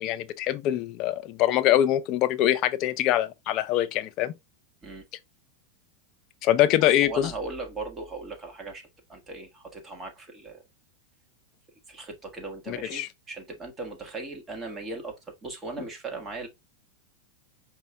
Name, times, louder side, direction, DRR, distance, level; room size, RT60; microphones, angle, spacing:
voice 1, 0.0-4.3 6.4-7.3 12.7-13.1, left 12 dB, 40° left, 0.6 m, -24 dB
voice 2, 7.0-10.6 11.9-16.5, right 3 dB, 20° right, 1.5 m, -38 dB
5.1 x 2.7 x 3.3 m
supercardioid pair, 140°, 0 cm